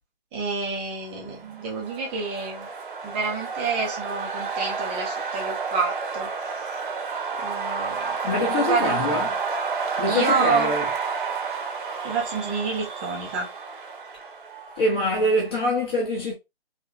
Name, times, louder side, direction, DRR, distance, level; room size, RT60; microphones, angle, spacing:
voice 1, 0.3-2.7 3.0-6.3 7.4-8.2 8.6-9.2 10.1-10.7 12.0-13.5, right 4 dB, 10° right, 0.6 m, -28 dB
sound 1, 1.4-15.2, right 5 dB, 55° right, 0.9 m, -30 dB
voice 2, 8.2-9.3 10.0-10.9 14.8-16.3, left 1 dB, 25° left, 0.8 m, -24 dB
3.6 x 2.8 x 2.4 m
figure-of-eight pair, 145°, 31 cm